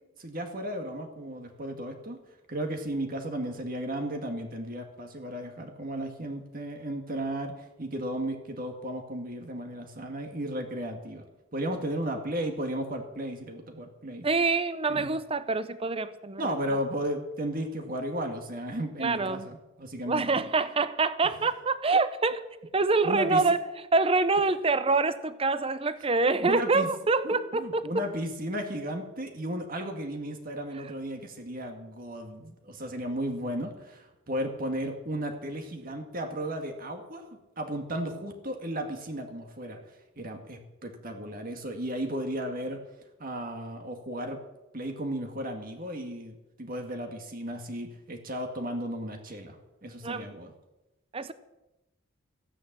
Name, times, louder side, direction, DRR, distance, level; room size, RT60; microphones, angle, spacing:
voice 1, 0.2-2.2 2.5-11.3 11.5-14.3 14.9-15.1 16.4-20.4 23.0-23.4 26.4-26.9 27.2-37.2 37.6-39.8 40.2-42.8 43.2-44.4 44.7-50.5, right 1 dB, 45° right, 4 dB, 1.9 m, -34 dB
voice 2, 14.2-16.5 19.0-19.5 20.1-23.6 23.9-28.0 30.8-30.9 50.0-50.3 51.1-51.3, right 3 dB, 30° right, 14 dB, 0.7 m, -26 dB
14.0 x 10.0 x 7.4 m, 0.98 s
head